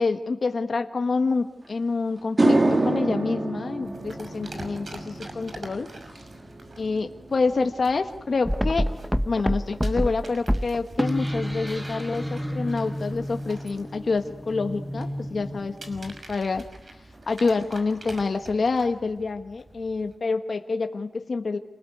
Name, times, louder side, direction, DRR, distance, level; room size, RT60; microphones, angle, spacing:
voice 1, 0.0-5.9 6.8-8.9 9.2-16.6 17.3-21.6, left 4 dB, 70° left, 6 dB, 1.4 m, -27 dB
sound 1, 1.6-1.7 2.2-10.7 11.0-11.4 15.0-15.1 16.7-16.8 17.1-17.3 17.5-18.1, right 2 dB, 40° right, 3.2 m, -29 dB
sound 2, 3.8-20.2, right 2 dB, 60° right, 5.9 m, -47 dB
sound 3, 8.4-16.2, equal, 5° right, 1.3 m, -29 dB
28.5 x 20.0 x 9.5 m, 0.89 s
wide cardioid pair, 65°, 0 cm